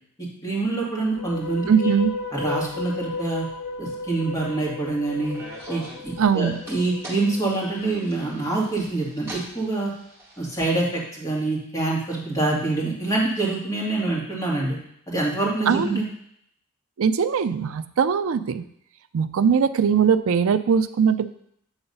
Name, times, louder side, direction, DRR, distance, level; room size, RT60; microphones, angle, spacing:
voice 1, 0.4-1.9 2.3-3.4 3.8-5.4 5.7-9.9 10.4-14.8 15.1-16.0, right 2 dB, 15° left, -5 dB, 2.1 m, -26 dB
sound 1, 1.0-8.3, left 3 dB, 90° left, 0.4 m, -34 dB
voice 2, 1.7-2.1 6.2-6.6 15.7-16.0 17.0-18.6 19.1-21.3, right 6 dB, 65° right, 12 dB, 0.4 m, -21 dB
sound 2, 5.2-10.7, right 1 dB, 15° right, 2.3 m, -43 dB
8.1 x 3.9 x 5.4 m, 0.72 s
head